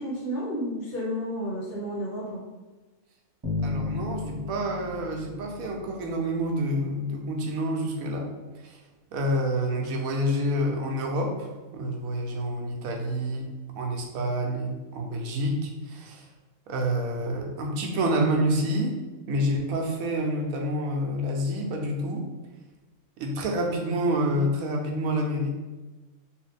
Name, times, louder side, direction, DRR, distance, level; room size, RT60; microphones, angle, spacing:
voice 1, 0.0-2.4, equal, 45° left, -7 dB, 0.9 m, -31 dB
Bass guitar, 3.4-6.5, left 3 dB, 20° right, 1.2 m, -34 dB
voice 2, 3.6-8.3 8.6-8.8 9.1-13.5 13.8-16.3 16.7-19.0 19.3-22.3 23.2-25.5, equal, 85° right, 1 dB, 1.1 m, -28 dB
3.3 x 3.0 x 3.3 m, 1.2 s
omnidirectional pair, 1.4 m